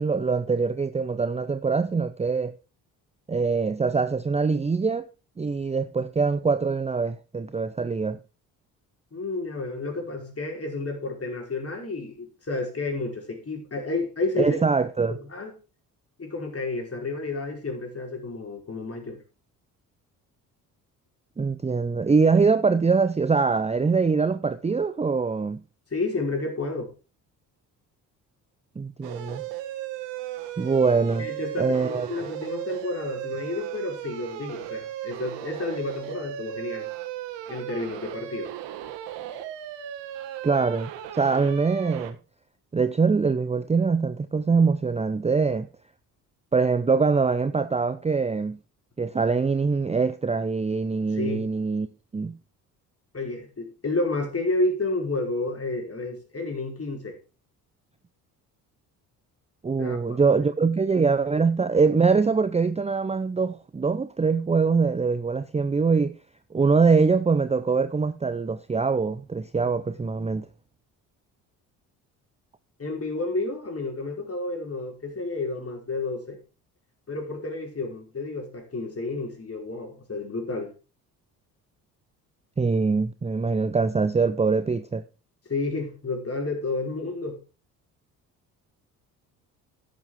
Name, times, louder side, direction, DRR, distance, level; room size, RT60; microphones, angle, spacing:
voice 1, 0.0-2.5 3.3-5.0 5.4-8.2 14.4-15.2 21.4-25.6 28.8-29.4 30.6-31.3 31.6-32.2 40.4-42.2 42.7-45.7 46.5-48.6 49.0-51.9 52.1-52.3 59.6-66.1 66.5-70.5 82.6-85.0, right 4 dB, 15° right, 0.7 m, -23 dB
voice 2, 9.1-14.6 15.1-15.5 16.2-19.2 25.9-26.9 31.2-36.9 37.5-38.5 51.1-51.4 53.1-57.2 59.8-60.4 72.8-76.4 77.1-80.7 85.5-87.4, left 2 dB, 30° left, 5.0 m, -31 dB
sound 1, 29.0-42.1, right 12 dB, 70° right, 1.6 m, -36 dB
11.5 x 7.5 x 4.8 m
hypercardioid pair, 55°, 45 cm